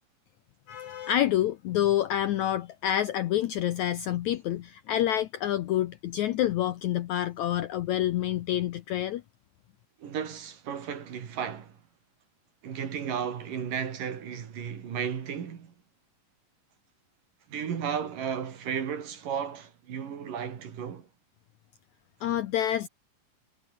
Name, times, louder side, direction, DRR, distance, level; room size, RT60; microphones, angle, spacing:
voice 1, 0.7-9.2 22.2-22.9, left 12 dB, 75° left, 1.8 m, -28 dB
voice 2, 10.0-11.8 12.6-15.7 17.5-21.1, right 7 dB, 65° right, 4.3 m, -34 dB
omnidirectional pair, 4.2 m